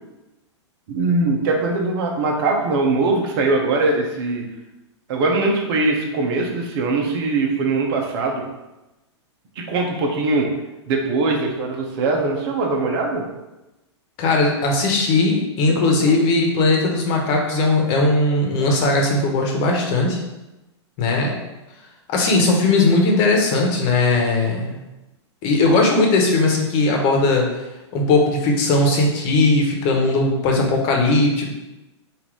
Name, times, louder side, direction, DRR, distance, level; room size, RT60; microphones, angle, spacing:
voice 1, 0.9-4.4 5.1-8.4 9.6-10.5 10.9-13.3 15.7-16.2, right 3 dB, 50° right, 1 dB, 1.1 m, -21 dB
voice 2, 14.2-20.2 21.0-21.3 22.1-24.7 25.4-27.5 27.9-31.5, left 2 dB, 40° left, 0 dB, 1.1 m, -18 dB
3.8 x 2.8 x 4.7 m, 1.0 s
hypercardioid pair, 125°, 15 cm